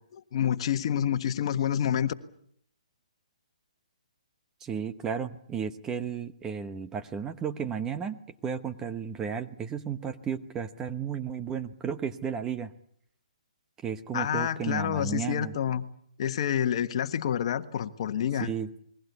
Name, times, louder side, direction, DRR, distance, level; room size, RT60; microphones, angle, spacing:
voice 1, 0.1-2.1 14.1-15.8 16.2-18.5, left 9 dB, 45° left, 1.5 m, -28 dB
voice 2, 4.6-12.7 13.8-15.5 18.4-18.7, right 7 dB, 15° right, 1.0 m, -33 dB
28.5 x 21.5 x 8.2 m
hypercardioid pair, 150°, 4 cm